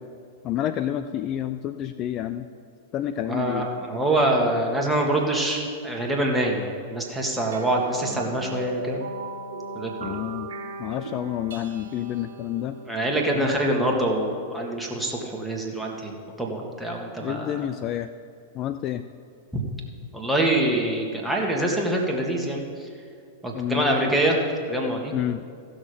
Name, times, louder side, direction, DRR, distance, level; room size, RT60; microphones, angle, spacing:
voice 1, 0.4-2.5 2.9-3.7 10.0-10.5 10.8-12.8 13.3-13.6 17.2-18.1 18.5-19.0 23.5-24.1 25.1-25.4, left 11 dB, 40° left, 11 dB, 0.4 m, -29 dB
voice 2, 3.3-9.0 9.8-10.2 12.9-16.1 16.4-17.7 19.5-19.6 20.1-22.9 23.4-24.4 24.7-25.1, right 1 dB, 5° right, -2 dB, 1.8 m, -25 dB
sound 1, 7.5-14.4, right 2 dB, 75° right, 1.0 m, -38 dB
15.0 x 6.4 x 5.1 m, 2.3 s
hypercardioid pair, 110°, 0 cm